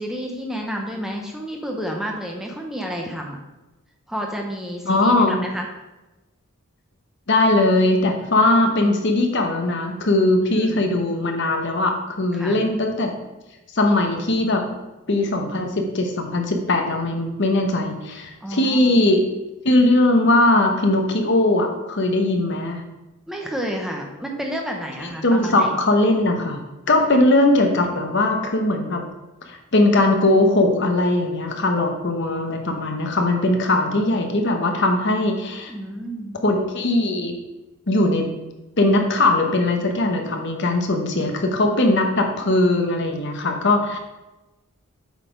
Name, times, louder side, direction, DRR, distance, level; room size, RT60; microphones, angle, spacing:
voice 1, 0.0-3.4 4.1-5.7 10.5-10.9 12.3-12.6 18.4-19.1 23.3-25.8 35.7-36.4, equal, ahead, 1 dB, 0.8 m, -30 dB
voice 2, 4.8-5.4 7.3-13.1 13.7-14.6 15.1-19.2 19.6-22.8 25.0-26.6 26.9-29.0 29.5-35.7 36.4-37.3 37.9-38.3 38.8-44.0, left 2 dB, 55° left, 3 dB, 1.0 m, -20 dB
8.2 x 4.2 x 5.1 m, 1.0 s
head